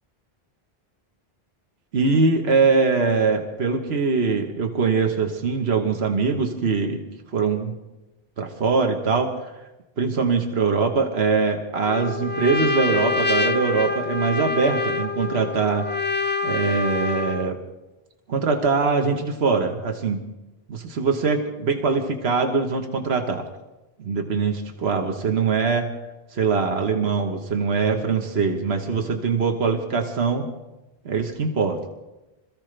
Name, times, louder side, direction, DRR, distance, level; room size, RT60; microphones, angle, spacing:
voice 1, 1.9-7.0 7.3-7.8 8.4-9.3 10.0-15.8 16.4-17.6 18.3-20.2 20.7-23.4 24.0-25.9 26.3-30.5 31.0-31.8, right 4 dB, 75° right, 3 dB, 1.6 m, -22 dB
Trumpet, 11.8-17.5, left 4 dB, 15° left, 0.4 m, -26 dB
25.5 x 15.0 x 3.3 m, 1.0 s
omnidirectional pair, 1.1 m